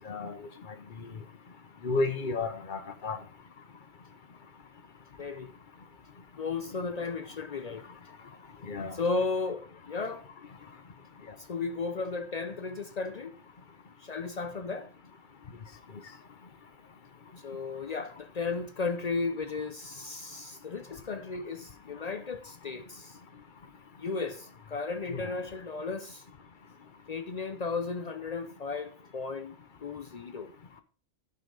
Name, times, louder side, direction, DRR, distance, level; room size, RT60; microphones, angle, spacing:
voice 1, 0.1-0.4 1.8-3.2 8.7-8.9 25.1-25.3, left 3 dB, 40° left, 0.9 m, -32 dB
voice 2, 5.2-5.5 6.4-7.8 8.9-10.3 11.4-13.3 14.0-14.9 17.4-23.2 24.0-26.2 27.1-29.5 29.8-30.5, left 4 dB, 65° left, 0.4 m, -34 dB
11.0 x 5.7 x 5.3 m
omnidirectional pair, 1.5 m